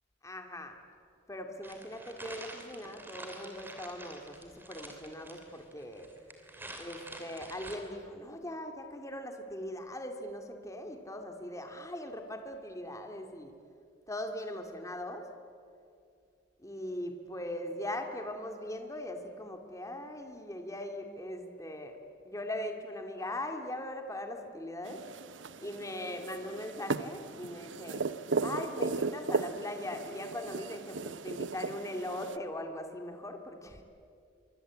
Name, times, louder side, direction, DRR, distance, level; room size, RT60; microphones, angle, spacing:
voice 1, 0.2-0.8 1.3-6.1 6.8-13.5 14.1-15.3 16.6-22.0 22.2-25.0 25.6-28.1 28.4-33.8, left 1 dB, 15° left, 5 dB, 2.2 m, -40 dB
sound 1, 1.6-7.8, right 1 dB, 10° right, 3.1 m, -47 dB
sound 2, 24.8-32.4, right 4 dB, 80° right, 0.8 m, -36 dB
26.5 x 24.0 x 8.4 m, 2.4 s
head